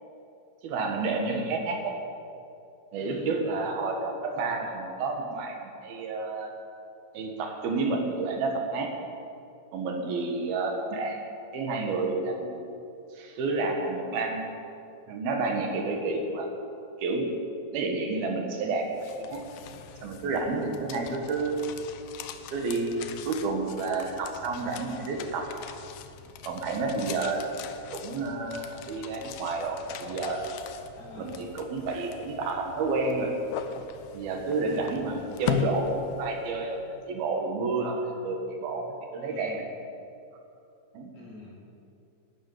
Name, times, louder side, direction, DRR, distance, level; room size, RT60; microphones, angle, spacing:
voice 1, 0.6-2.0 2.9-5.6 5.8-6.5 7.1-8.9 9.7-11.2 11.5-12.6 13.1-14.5 15.1-16.5 17.0-17.4 17.7-19.4 20.0-21.9 22.5-25.5 26.4-27.6 27.9-30.5 31.2-33.4 34.1-39.7 40.9-41.1, right 3 dB, 65° right, 3 dB, 3.3 m, -30 dB
voice 2, 2.9-3.4 31.0-31.4 39.2-39.7 41.1-41.9, left 2 dB, 40° left, -4 dB, 6.3 m, -46 dB
sound 1, 18.7-36.7, left 8 dB, 85° left, 1.8 m, -40 dB
12.5 x 12.0 x 9.2 m, 2.6 s
omnidirectional pair, 4.8 m